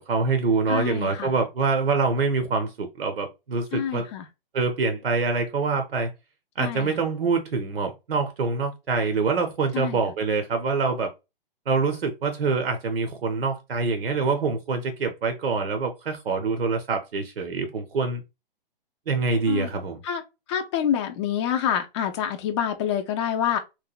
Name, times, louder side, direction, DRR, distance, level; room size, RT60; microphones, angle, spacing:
voice 1, 0.0-4.1 4.5-6.1 6.6-11.1 11.7-18.2 19.1-20.0, right 4 dB, 85° right, 0.6 m, -25 dB
voice 2, 0.7-1.3 3.7-4.2 6.6-6.9 9.7-10.0 19.5-19.7 20.0-20.2 20.5-23.6, left 9 dB, 30° left, 0.4 m, -27 dB
3.0 x 2.1 x 2.3 m
hypercardioid pair, 135°, 29 cm